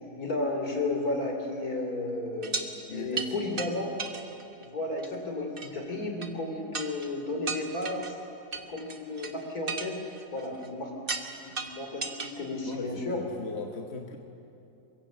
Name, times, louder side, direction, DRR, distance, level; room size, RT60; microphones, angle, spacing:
voice 1, 0.2-3.9 4.6-8.1 8.7-10.0 10.3-10.9 11.4-13.2, left 2 dB, 60° left, 3 dB, 3.8 m, -33 dB
sound 1, 2.4-2.7 3.2-3.3 3.6-3.7 4.0-4.7 5.0-5.1 5.6-5.7 6.2-6.3 6.7-7.1 7.5-8.1 8.5-9.3 9.7-10.7 11.1-11.3 11.6-12.3 12.7-12.8, right 4 dB, 35° right, 1.4 m, -35 dB
voice 2, 2.9-3.4 12.6-14.2, left 5 dB, 40° left, 3 dB, 1.5 m, -39 dB
24.5 x 22.5 x 7.5 m, 2.7 s
omnidirectional pair, 1.8 m